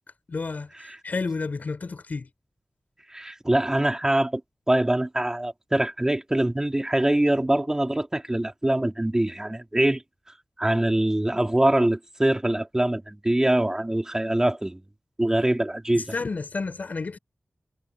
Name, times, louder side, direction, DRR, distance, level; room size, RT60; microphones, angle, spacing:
voice 1, 0.3-2.3 15.9-17.2, left 4 dB, 65° left, 3.4 m, -31 dB
voice 2, 3.1-4.4 4.7-10.0 10.6-14.8 15.2-16.1, right 1 dB, 20° right, 2.7 m, -23 dB
wide cardioid pair, 100°, 3 cm